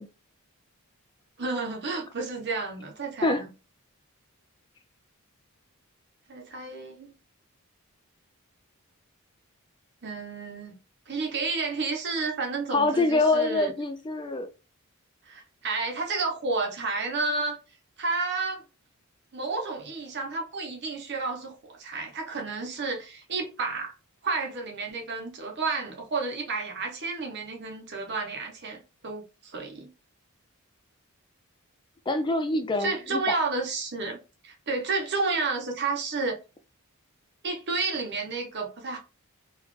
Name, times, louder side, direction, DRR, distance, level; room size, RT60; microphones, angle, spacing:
voice 1, 1.4-3.5 6.3-7.1 10.0-10.8 11.1-13.7 15.3-17.6 18.0-18.6 19.3-23.9 24.2-29.9 32.8-34.2 34.4-36.4 37.4-39.0, right 3 dB, 50° right, 0.9 m, -31 dB
voice 2, 12.7-14.5 32.1-33.4, left 2 dB, 20° left, 0.3 m, -25 dB
4.0 x 2.4 x 3.1 m
head